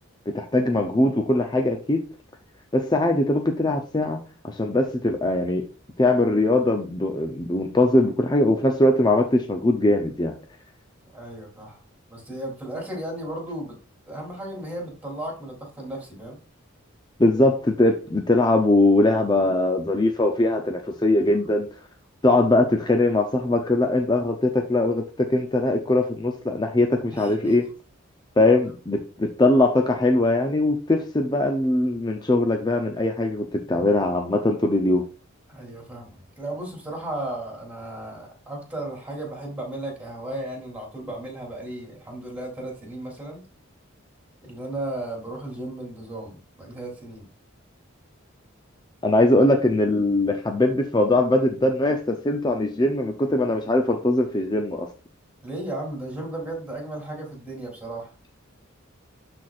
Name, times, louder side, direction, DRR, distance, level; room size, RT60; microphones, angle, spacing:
voice 1, 0.3-2.0 2.7-5.6 6.0-10.3 17.2-21.7 22.2-27.7 28.4-35.1 49.0-54.9, left 2 dB, 20° left, 3 dB, 0.6 m, -21 dB
voice 2, 11.1-11.8 12.1-13.7 14.1-16.4 27.1-27.5 35.5-36.1 36.4-43.4 44.4-47.3 55.4-58.1, right 1 dB, 10° right, -1 dB, 3.1 m, -35 dB
12.5 x 4.3 x 2.4 m, 0.34 s
head